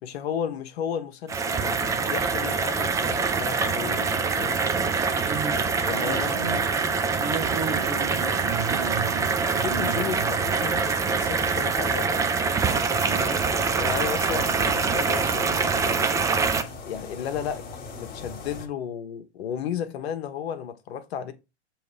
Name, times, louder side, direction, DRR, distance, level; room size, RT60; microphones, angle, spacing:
voice 1, 0.0-4.6 5.5-6.5 9.6-12.2 13.8-15.7 16.8-17.6 17.9-21.3, left 8 dB, 60° left, 1.2 m, -33 dB
sound 1, 1.3-16.6, right 5 dB, 10° right, 0.4 m, -25 dB
voice 2, 5.2-6.7 7.2-10.3 13.1-13.5, right 5 dB, 40° right, 1.4 m, -34 dB
sound 2, 13.4-18.7, left 4 dB, 25° left, 1.5 m, -40 dB
6.9 x 3.2 x 4.9 m
hypercardioid pair, 120°, 34 cm